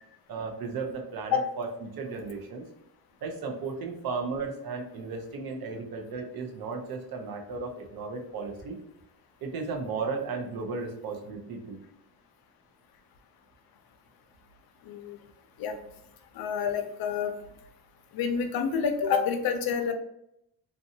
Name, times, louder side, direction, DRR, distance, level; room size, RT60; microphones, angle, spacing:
voice 1, 0.3-2.7 3.2-8.8 9.4-11.8, right 4 dB, 60° right, 3 dB, 0.7 m, -35 dB
voice 2, 14.9-15.2 15.6-15.8 16.3-17.3 18.1-19.9, left 6 dB, 65° left, 6 dB, 0.5 m, -28 dB
2.7 x 2.3 x 2.6 m, 0.77 s
cardioid pair, 120°, 40 cm